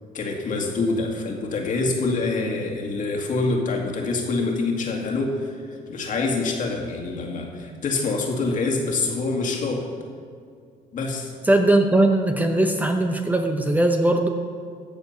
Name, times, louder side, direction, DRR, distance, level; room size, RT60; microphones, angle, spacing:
voice 1, 0.1-9.9 10.9-11.3, left 3 dB, 50° left, 1 dB, 2.1 m, -26 dB
voice 2, 11.4-14.3, right 1 dB, 10° right, 4 dB, 0.8 m, -19 dB
14.5 x 7.1 x 5.6 m, 2.2 s
cardioid pair, 110°, 17 cm